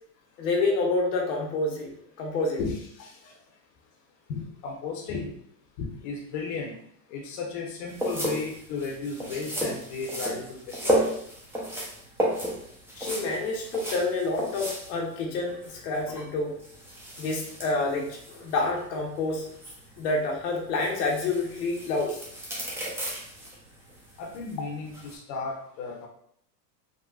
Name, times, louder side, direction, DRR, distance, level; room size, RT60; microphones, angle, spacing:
voice 1, 0.4-2.6 13.0-16.5 17.2-19.5 20.0-22.2, left 3 dB, 85° left, -1 dB, 1.1 m, -28 dB
voice 2, 2.6-3.4 4.3-5.3 5.8-6.7 7.1-11.2 24.2-26.1, left 4 dB, 55° left, -1 dB, 0.9 m, -35 dB
sound 1, 7.9-25.1, right 1 dB, 5° right, 0.6 m, -34 dB
3.7 x 2.4 x 2.4 m, 0.66 s
supercardioid pair, 120°, 49 cm